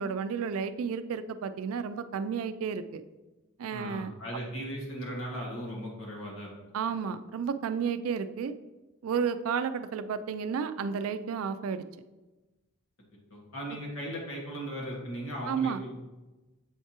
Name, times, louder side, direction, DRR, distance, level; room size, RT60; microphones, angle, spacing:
voice 1, 0.0-3.0 3.6-4.1 6.7-8.6 9.0-11.9 15.5-15.8, right 6 dB, 80° right, 11 dB, 0.3 m, -32 dB
voice 2, 3.7-6.5 6.9-7.0 13.3-15.9, equal, 75° left, -2 dB, 1.7 m, -37 dB
7.3 x 4.5 x 2.9 m, 1.1 s
head